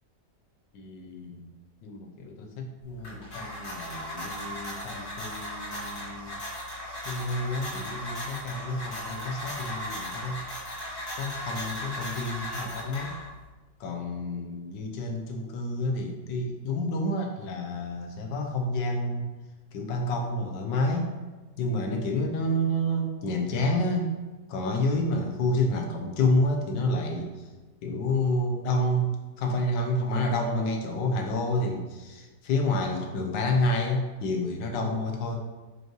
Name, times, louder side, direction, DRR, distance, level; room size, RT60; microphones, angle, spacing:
voice 1, 0.7-1.5 1.8-6.4 7.0-10.4 11.2-13.1 13.8-19.3 19.7-21.1 21.6-24.1 24.5-27.3 27.8-35.4, left 1 dB, 90° left, 3 dB, 1.5 m, -29 dB
sound 1, 2.8-13.5, equal, 60° left, 2.6 m, -37 dB
6.3 x 5.3 x 3.0 m, 1.2 s
omnidirectional pair, 1.9 m